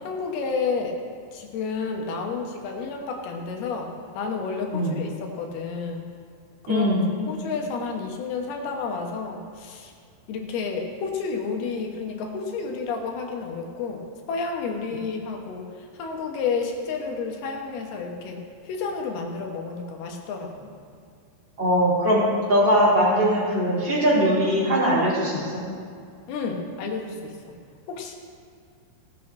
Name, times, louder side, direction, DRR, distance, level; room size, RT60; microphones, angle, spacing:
voice 1, 0.0-1.0 1.3-6.0 6.6-6.9 7.2-9.9 10.3-20.7 26.3-27.5 27.9-28.1, left 4 dB, 80° left, 2 dB, 3.1 m, -31 dB
voice 2, 6.7-7.0 21.6-25.6, equal, 30° right, -7 dB, 3.7 m, -21 dB
18.0 x 12.0 x 3.2 m, 2.3 s
omnidirectional pair, 4.5 m